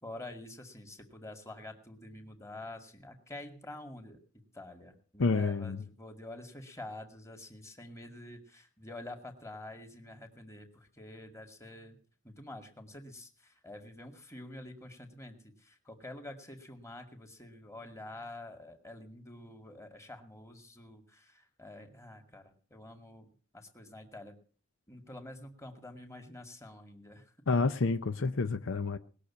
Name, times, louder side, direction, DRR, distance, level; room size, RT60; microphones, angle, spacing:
voice 1, 0.0-4.2 4.5-12.0 12.2-24.3 24.9-27.6, left 1 dB, 15° left, 2.2 m, -48 dB
voice 2, 5.2-5.8 27.5-29.0, left 4 dB, 65° left, 0.7 m, -29 dB
19.5 x 6.6 x 8.5 m
head